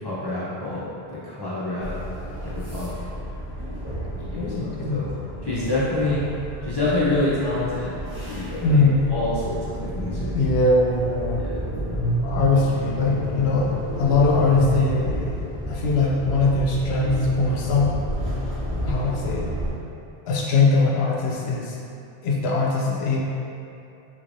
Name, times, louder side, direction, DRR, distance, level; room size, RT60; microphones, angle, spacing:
voice 1, 0.0-0.8 1.1-1.9 2.4-2.9 4.1-5.1 5.4-6.2 6.6-7.9 8.3-8.8 9.1-10.3 11.4-11.7, left 2 dB, 30° left, -11 dB, 0.6 m, -27 dB
sound 1, 1.8-19.7, equal, 10° right, 1.1 m, -30 dB
voice 2, 4.4-5.1 8.6-8.9 10.3-11.4 12.2-17.9 18.8-19.5 20.3-21.7 22.2-23.2, left 3 dB, 85° left, -2 dB, 0.8 m, -21 dB
3.7 x 3.1 x 2.6 m, 2.7 s
omnidirectional pair, 1.1 m